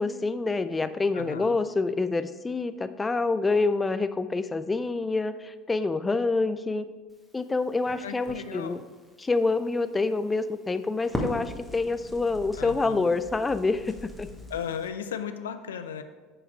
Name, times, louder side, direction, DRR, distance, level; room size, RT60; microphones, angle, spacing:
voice 1, 0.0-6.9 7.3-8.8 9.2-14.3, left 3 dB, 20° left, 11 dB, 0.4 m, -27 dB
voice 2, 1.1-1.6 8.0-8.8 12.6-13.1 14.5-16.0, left 8 dB, 80° left, 9 dB, 0.4 m, -36 dB
Crackle, 7.1-14.9, equal, ahead, 1.7 m, -40 dB
8.7 x 4.7 x 4.7 m, 1.4 s
figure-of-eight pair, 70°, 0 cm